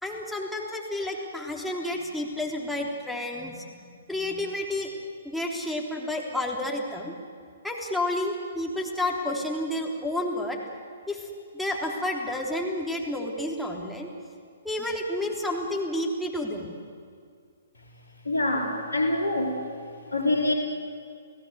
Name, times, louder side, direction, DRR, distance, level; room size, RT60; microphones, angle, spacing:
voice 1, 0.0-3.8 4.1-4.9 5.2-7.1 7.6-10.6 11.1-11.3 11.5-14.1 14.6-16.7, left 1 dB, ahead, -2 dB, 3.6 m, -30 dB
voice 2, 18.2-19.6 20.1-20.5, left 2 dB, 80° left, 1 dB, 4.1 m, -25 dB
30.0 x 17.5 x 8.1 m, 2.2 s
figure-of-eight pair, 125°, 0 cm